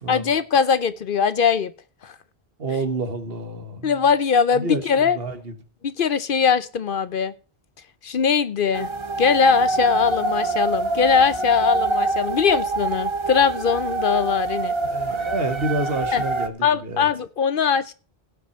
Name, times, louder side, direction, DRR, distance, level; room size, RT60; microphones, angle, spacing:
voice 1, 0.1-1.7 2.0-2.1 3.8-5.2 5.8-7.3 8.0-8.9 9.2-14.7 16.1-16.2 16.6-17.9, left 6 dB, 60° left, 0.8 m, -21 dB
voice 2, 2.6-4.0 4.5-5.5 14.8-17.1, right 2 dB, 65° right, 1.7 m, -29 dB
sound 1, 8.7-16.5, right 3 dB, 30° right, 0.9 m, -25 dB
17.0 x 6.0 x 4.2 m
omnidirectional pair, 1.1 m